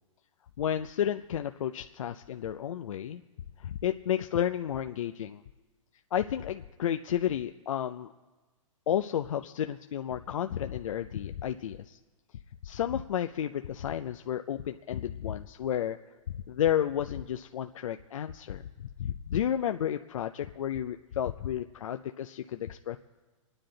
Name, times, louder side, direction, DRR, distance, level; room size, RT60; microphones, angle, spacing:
voice 1, 0.6-3.2 3.6-5.4 6.1-8.1 8.9-12.0 12.6-16.0 16.5-18.6 19.0-23.0, left 10 dB, 75° left, 7 dB, 0.5 m, -32 dB
25.5 x 9.9 x 3.9 m, 1.2 s
hypercardioid pair, 135°, 17 cm